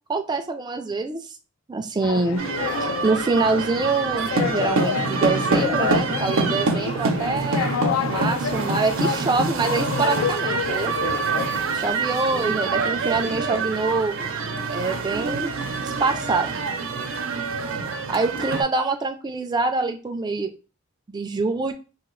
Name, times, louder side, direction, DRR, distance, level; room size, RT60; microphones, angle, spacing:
voice 1, 0.1-1.2 1.7-2.4 2.8-7.8 8.0-10.9 11.7-14.3 14.7-15.5 15.8-16.6 18.1-20.5 21.1-21.7, right 3 dB, 20° right, 5 dB, 0.3 m, -25 dB
sound 1, 2.0-11.9, left 8 dB, 80° left, 0.3 m, -29 dB
sound 2, 2.4-18.6, right 4 dB, 75° right, 0.6 m, -26 dB
2.8 x 2.8 x 3.1 m, 0.33 s
head